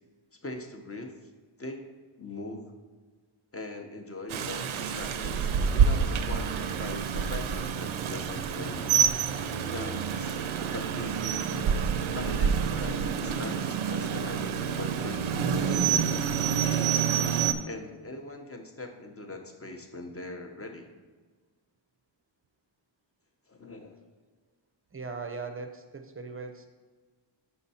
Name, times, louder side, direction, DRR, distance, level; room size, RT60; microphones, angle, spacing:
voice 1, 0.3-1.2 1.6-1.9 2.2-2.7 3.5-9.0 9.7-11.4 12.1-17.1 17.6-20.9 23.5-24.0, left 2 dB, 30° left, 3 dB, 0.7 m, -41 dB
Rain, 4.3-17.5, right 7 dB, 75° right, 0.5 m, -28 dB
voice 2, 24.9-26.7, right 4 dB, 30° right, 6 dB, 0.5 m, -39 dB
5.6 x 5.5 x 4.1 m, 1.4 s
wide cardioid pair, 115°, 49 cm